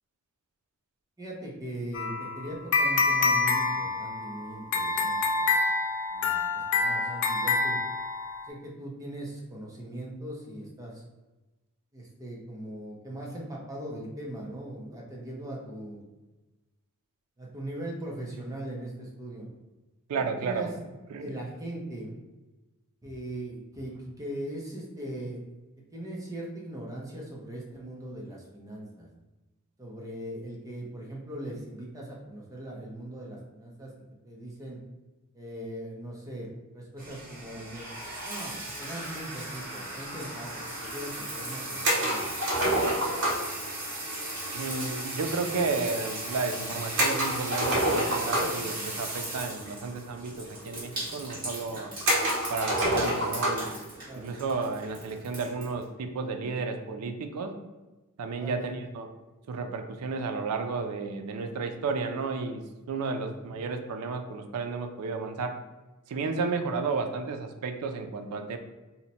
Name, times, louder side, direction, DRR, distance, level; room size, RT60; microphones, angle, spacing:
voice 1, 1.2-5.6 6.1-7.8 8.5-11.0 11.9-16.0 17.4-19.5 20.1-20.9 21.2-22.2 23.0-25.4 25.9-29.1 29.8-33.9 34.2-34.8 35.3-37.9 38.2-42.5 54.0-54.3 58.4-58.7 63.1-63.5, right 1 dB, 15° right, -3 dB, 0.6 m, -40 dB
sound 1, 1.9-8.5, left 3 dB, 55° left, 0.3 m, -27 dB
voice 2, 20.1-20.7 21.1-21.3 44.5-51.9 52.5-53.8 54.2-57.5 58.2-59.1 59.5-62.6 62.9-65.5 66.1-68.6, right 4 dB, 90° right, 6 dB, 0.4 m, -32 dB
sound 2, 37.0-55.8, right 1 dB, 40° right, 1.4 m, -38 dB
sound 3, 41.8-43.5 47.0-48.7 49.7-49.8 50.1-50.2 51.0-51.1 52.0-53.7, right 1 dB, 55° right, 1.0 m, -27 dB
2.8 x 2.1 x 4.0 m, 1.1 s
head